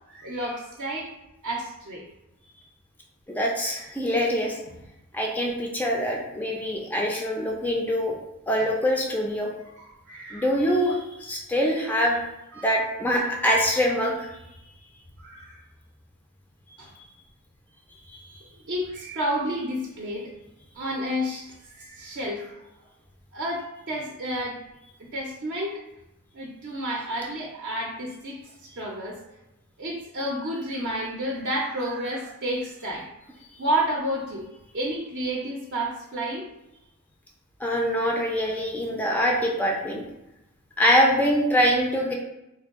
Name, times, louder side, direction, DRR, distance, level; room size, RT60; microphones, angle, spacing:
voice 1, 0.1-1.1 1.4-2.0 9.8-10.5 12.5-12.7 15.2-15.6 16.8-16.9 18.7-20.3 20.7-22.6 23.3-24.6 25.1-25.8 26.3-29.2 29.8-33.0 33.6-34.4 34.7-36.5, right 1 dB, 50° right, -2 dB, 0.5 m, -30 dB
voice 2, 3.3-4.7 5.1-8.2 8.5-9.5 10.3-12.2 12.6-14.3 18.1-18.4 37.6-40.0 40.8-42.1, equal, 10° left, -1 dB, 0.4 m, -24 dB
3.3 x 2.2 x 3.5 m, 0.90 s
head